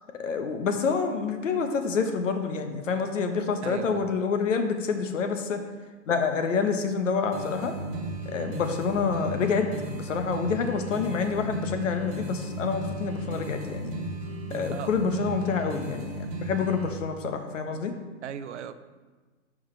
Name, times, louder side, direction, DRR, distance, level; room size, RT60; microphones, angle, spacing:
voice 1, 0.1-5.6 6.1-7.7 8.2-14.0 14.5-17.9, left 5 dB, 75° left, 6 dB, 1.2 m, -27 dB
voice 2, 3.6-4.1 14.7-14.9 18.2-18.8, right 8 dB, 65° right, 12 dB, 0.6 m, -37 dB
sound 1, 7.3-16.9, right 1 dB, 30° right, 1.3 m, -35 dB
12.5 x 4.8 x 3.3 m, 1.3 s
hypercardioid pair, 160°, 38 cm